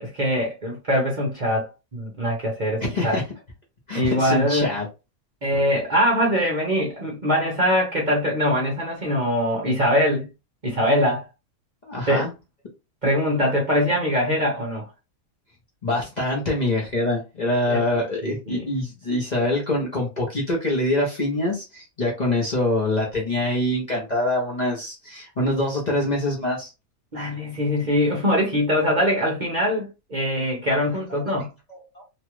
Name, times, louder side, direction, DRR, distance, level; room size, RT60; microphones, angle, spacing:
voice 1, 0.0-3.2 3.9-4.7 5.4-10.3 10.6-11.2 12.1-12.3 13.0-14.8 17.7-18.6 27.1-31.5, equal, 40° right, 0.8 m, -23 dB
voice 2, 2.8-3.2 3.9-4.9 11.8-12.3 15.8-26.7 31.1-31.2 31.7-32.0, left 1 dB, 35° left, 0.8 m, -25 dB
3.0 x 2.3 x 3.0 m
omnidirectional pair, 1.5 m